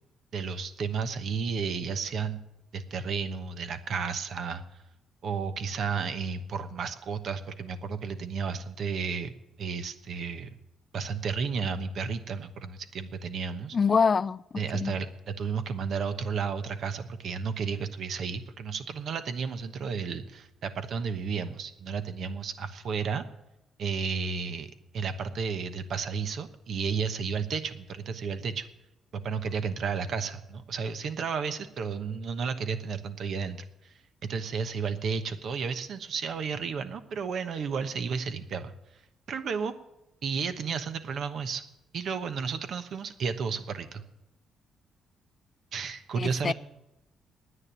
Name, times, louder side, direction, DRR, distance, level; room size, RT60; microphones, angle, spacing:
voice 1, 0.3-2.4 2.7-4.6 5.2-9.3 9.6-10.6 10.9-13.8 14.6-23.2 23.8-28.7 29.1-33.9 34.3-38.7 39.3-39.7 40.2-41.6 41.9-44.0 45.7-46.5, right 5 dB, 65° right, 10 dB, 1.1 m, -32 dB
voice 2, 13.7-14.4 14.7-14.9 46.2-46.5, left 5 dB, 40° left, 20 dB, 0.4 m, -25 dB
9.8 x 9.1 x 9.7 m, 0.89 s
cardioid pair, 90°, 0 cm